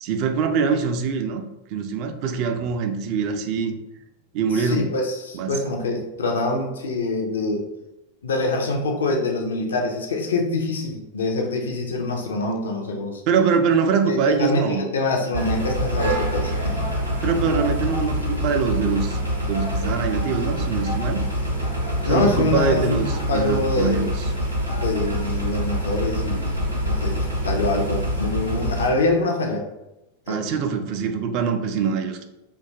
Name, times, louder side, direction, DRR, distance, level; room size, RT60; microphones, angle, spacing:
voice 1, 0.0-1.4 1.7-3.7 4.3-4.9 5.3-5.5 13.3-14.8 17.2-19.2 19.5-21.2 22.0-24.1 30.3-32.2, right 6 dB, 45° right, 6 dB, 0.3 m, -23 dB
voice 2, 4.5-7.7 8.2-13.2 14.1-16.9 22.0-24.1 24.8-29.6 30.3-30.5, left 2 dB, 65° left, 1 dB, 0.4 m, -25 dB
sound 1, 15.3-28.9, equal, 90° right, 0.6 m, -25 dB
2.7 x 2.2 x 2.7 m, 0.96 s
figure-of-eight pair, 90°, 0 cm